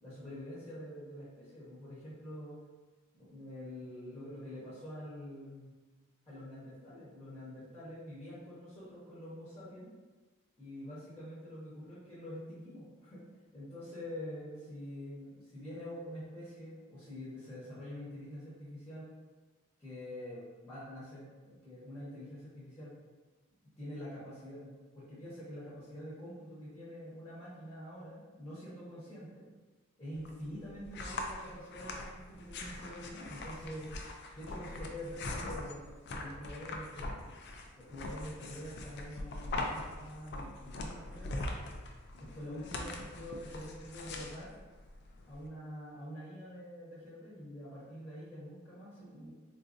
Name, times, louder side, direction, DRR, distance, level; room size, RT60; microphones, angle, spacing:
voice 1, 0.0-2.6 3.1-5.7 6.3-9.9 10.6-13.2 13.5-19.1 19.8-22.9 23.8-29.5 30.0-33.9 34.3-35.9 36.1-37.3 37.8-41.4 42.2-44.5 45.3-49.3, equal, 10° left, -10 dB, 0.9 m, -46 dB
sound 1, 30.2-45.5, left 2 dB, 55° left, 0.4 m, -42 dB
3.9 x 2.5 x 2.5 m, 1.3 s
head